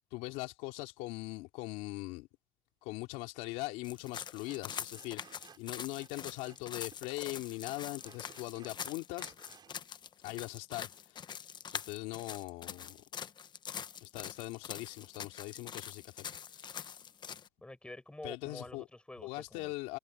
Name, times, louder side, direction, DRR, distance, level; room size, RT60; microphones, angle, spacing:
voice 1, 0.1-2.3 2.8-9.3 10.2-11.2 11.7-13.0 14.0-16.2 16.5-16.9 18.2-18.8 19.2-20.0, left 21 dB, 85° left, 3.1 m, -41 dB
Sawing, 3.4-3.5 3.8-4.0 4.4-6.7 6.9-9.8, right 7 dB, 40° right, 7.0 m, -59 dB
sound 1, 3.8-17.5, left 8 dB, 40° left, 1.0 m, -44 dB
voice 2, 17.6-19.7, left 1 dB, 10° left, 7.0 m, -48 dB
supercardioid pair, 95°, 11 cm